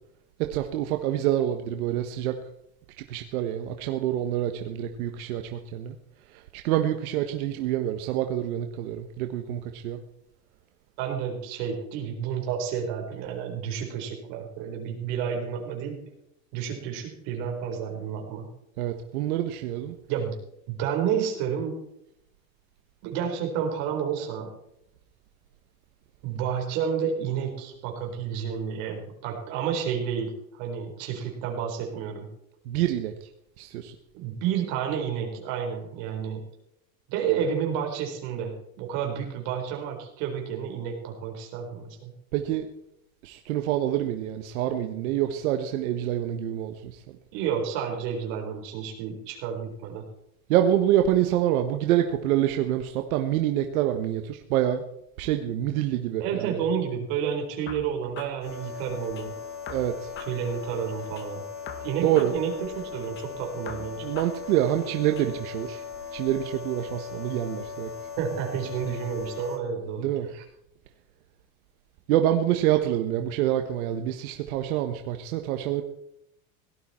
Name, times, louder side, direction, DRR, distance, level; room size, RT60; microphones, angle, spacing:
voice 1, 0.4-2.4 3.1-5.9 6.3-10.0 18.8-20.0 32.7-33.3 33.6-33.9 42.3-42.7 43.2-47.2 50.5-54.8 55.2-56.6 59.7-60.1 62.0-62.3 64.0-65.8 66.1-67.9 70.0-70.3 72.1-75.8, right 12 dB, 90° right, 6 dB, 1.3 m, -26 dB
voice 2, 11.0-16.0 16.5-18.5 20.1-20.4 20.7-21.8 23.0-24.5 26.2-32.3 34.1-36.4 37.1-42.1 47.3-50.0 56.2-59.3 60.3-61.4 61.8-64.1 68.2-70.4, right 7 dB, 55° right, 2 dB, 4.2 m, -30 dB
sound 1, 57.7-59.3 59.7-61.3 61.7-63.3 63.7-65.3, left 7 dB, 25° left, 1.6 m, -44 dB
sound 2, 58.4-69.6, left 6 dB, 55° left, 2.4 m, -39 dB
17.5 x 12.0 x 4.3 m, 0.78 s
cardioid pair, 170°, 42 cm